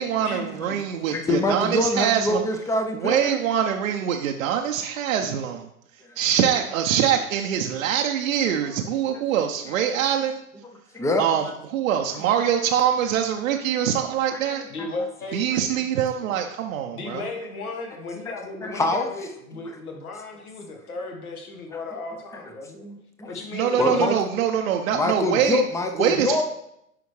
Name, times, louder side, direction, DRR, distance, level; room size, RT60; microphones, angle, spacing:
voice 1, 0.0-2.4 2.9-5.7 6.2-10.4 11.2-14.6 15.3-17.2 23.5-25.6 26.0-26.4, right 9 dB, 65° right, 3 dB, 0.7 m, -24 dB
voice 2, 1.1-3.4 9.1-9.2 10.9-11.2 14.3-14.9 18.6-19.1 22.7-23.4 23.8-24.2 24.9-26.4, left 2 dB, 5° left, 5 dB, 0.5 m, -25 dB
voice 3, 14.7-15.5 16.9-22.8 23.3-24.2, left 3 dB, 80° left, 3 dB, 1.7 m, -35 dB
9.5 x 5.0 x 3.1 m, 0.80 s
hypercardioid pair, 105°, 43 cm